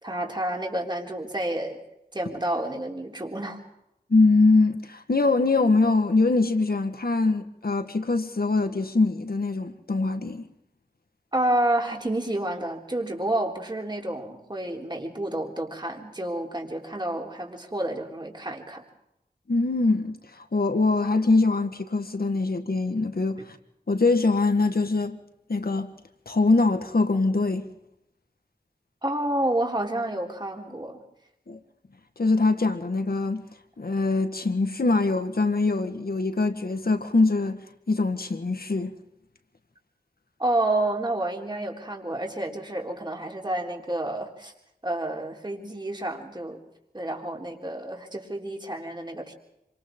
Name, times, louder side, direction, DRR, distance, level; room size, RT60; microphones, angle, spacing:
voice 1, 0.0-1.8 2.1-3.6 11.3-18.8 29.0-31.0 40.4-44.5 44.8-46.6 46.9-49.3, right 1 dB, 25° right, 3.7 m, -29 dB
voice 2, 4.1-10.4 19.5-23.6 23.9-25.2 25.5-25.9 26.2-27.7 31.5-31.6 32.2-33.4 33.8-37.6 37.9-38.9, left 3 dB, 65° left, 1.8 m, -23 dB
27.0 x 25.5 x 3.8 m
wide cardioid pair, 55°, 17 cm